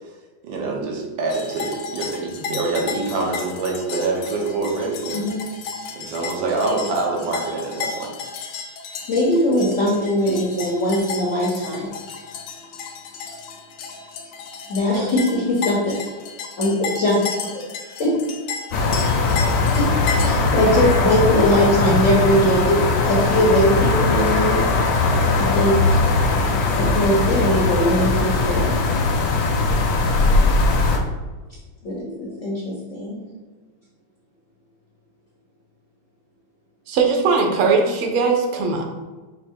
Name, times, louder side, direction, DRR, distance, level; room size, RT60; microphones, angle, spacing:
voice 1, 0.4-5.3 6.0-8.1, right 3 dB, 70° right, 0 dB, 1.5 m, -25 dB
sound 1, 1.3-20.3, left 5 dB, 90° left, 1.5 m, -33 dB
voice 2, 9.1-11.9 14.7-15.9 16.6-17.3 17.5-17.6 18.0-18.3 19.8-19.9 20.2-25.0 25.4-26.0 26.8-28.8 31.8-33.2, left 1 dB, 60° left, -5 dB, 0.8 m, -20 dB
sound 2, 18.7-31.0, left 3 dB, 75° left, 1.3 m, -19 dB
voice 3, 36.9-38.8, right 4 dB, 90° right, 2 dB, 1.6 m, -19 dB
5.3 x 2.1 x 4.4 m, 1.3 s
omnidirectional pair, 2.3 m